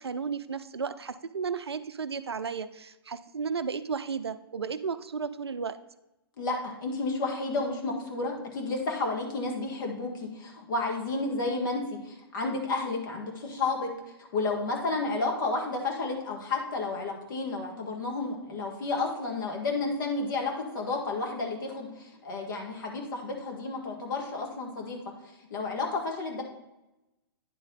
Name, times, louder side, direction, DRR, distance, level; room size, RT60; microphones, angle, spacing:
voice 1, 0.0-5.8, right 5 dB, 85° right, 13 dB, 0.5 m, -34 dB
voice 2, 6.4-13.9 14.2-25.0 25.5-26.4, left 3 dB, 55° left, 1 dB, 1.9 m, -31 dB
9.9 x 4.1 x 4.0 m, 0.95 s
figure-of-eight pair, 120°, 13 cm